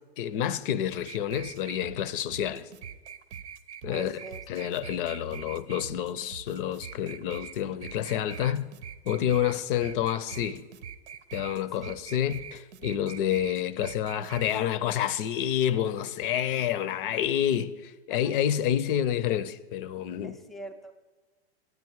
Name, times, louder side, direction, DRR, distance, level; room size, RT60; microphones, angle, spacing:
voice 1, 0.2-2.7 3.8-4.2 4.5-8.7 9.1-10.6 11.3-20.4, left 10 dB, 50° left, 0.6 m, -28 dB
sound 1, 1.0-14.6, right 7 dB, 80° right, 0.7 m, -44 dB
voice 2, 3.9-4.4 11.8-12.0 18.1-18.4 20.2-20.9, right 1 dB, ahead, 0.4 m, -42 dB
9.6 x 9.1 x 4.6 m
hypercardioid pair, 120°, 33 cm